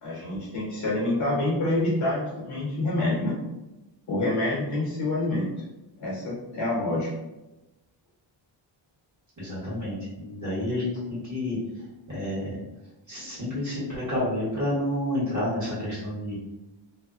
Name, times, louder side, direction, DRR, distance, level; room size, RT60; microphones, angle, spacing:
voice 1, 0.0-3.4 4.1-5.5 6.0-7.1, left 2 dB, 45° left, -5 dB, 1.0 m, -27 dB
voice 2, 9.4-11.6 12.1-12.6 13.1-16.3, left 1 dB, 40° right, -8 dB, 1.4 m, -29 dB
2.7 x 2.2 x 2.4 m, 0.99 s
wide cardioid pair, 140°, 48 cm